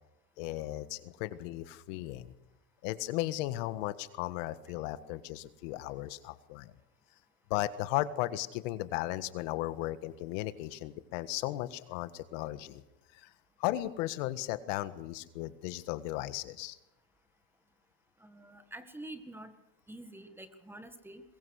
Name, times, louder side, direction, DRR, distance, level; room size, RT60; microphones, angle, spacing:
voice 1, 0.4-2.3 2.8-6.7 7.5-12.8 13.1-13.3 13.6-16.8, left 15 dB, 70° left, 13 dB, 1.7 m, -36 dB
voice 2, 18.2-19.5 19.9-21.2, right 1 dB, 5° right, 9 dB, 1.8 m, -47 dB
22.5 x 21.5 x 6.5 m, 0.93 s
cardioid pair, 155°, 39 cm